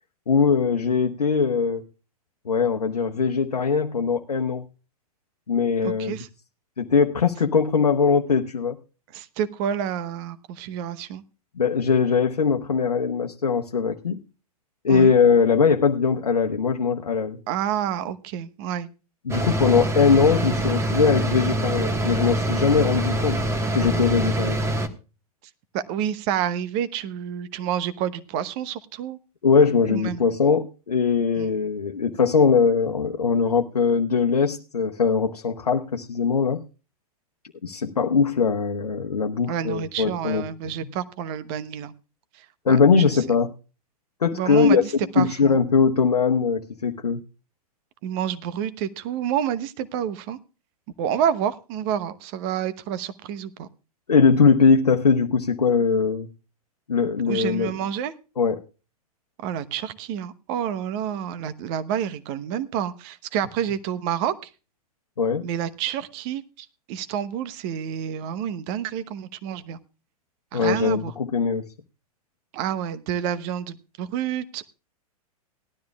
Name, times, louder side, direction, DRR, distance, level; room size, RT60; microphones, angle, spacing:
voice 1, 0.3-1.8 2.4-4.6 5.5-6.2 6.8-8.8 11.6-14.2 14.8-17.4 19.2-23.4 23.7-24.6 29.4-36.6 37.6-40.4 40.8-40.9 42.6-43.5 44.2-44.8 45.2-47.2 54.1-56.3 56.9-57.7 58.4-58.6 65.2-65.4 70.5-71.6, left 5 dB, 80° left, 3 dB, 1.0 m, -21 dB
voice 2, 5.8-6.3 9.1-11.2 14.9-15.1 17.5-18.9 25.7-29.2 29.9-30.2 31.4-31.5 39.5-41.9 42.7-43.2 44.3-44.8 45.1-45.6 48.0-50.4 51.0-53.7 57.3-58.1 59.4-64.3 65.4-69.8 70.5-71.1 72.5-74.6, right 9 dB, 40° right, 13 dB, 1.0 m, -29 dB
sound 1, 19.3-24.9, right 1 dB, 15° right, 1.5 m, -25 dB
18.5 x 12.5 x 2.3 m, 0.33 s
figure-of-eight pair, 100°, 19 cm